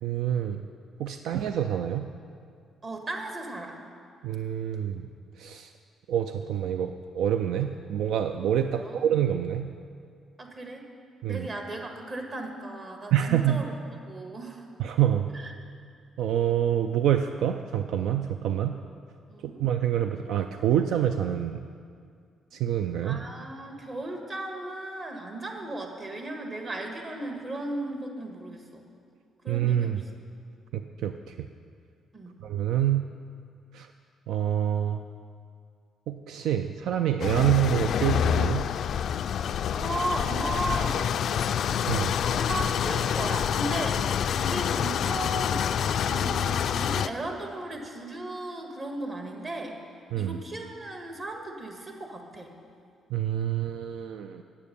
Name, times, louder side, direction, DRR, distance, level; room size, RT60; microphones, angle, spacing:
voice 1, 0.0-0.6 1.0-2.1 4.2-5.1 5.4-5.7 6.1-9.7 11.2-11.5 13.1-13.6 14.8-15.3 16.2-18.8 19.6-21.7 22.5-23.2 29.5-30.0 30.7-31.5 32.4-33.1 33.7-33.9 34.3-35.0 36.1-38.7 41.9-42.1 50.1-50.4 53.1-54.4, right 10 dB, 80° right, 7 dB, 0.4 m, -26 dB
voice 2, 2.8-3.8 8.7-9.0 10.4-10.8 11.3-13.6 14.1-14.6 15.3-15.5 19.3-19.6 23.0-28.8 29.4-29.9 32.1-32.4 37.3-37.5 39.7-41.1 42.2-45.6 46.0-49.8 50.2-52.5, right 2 dB, 40° right, 2 dB, 1.7 m, -36 dB
sound 1, 37.2-47.1, left 8 dB, 65° left, 0.3 m, -27 dB
9.2 x 8.5 x 6.8 m, 2.3 s
cardioid pair, 90°, 0 cm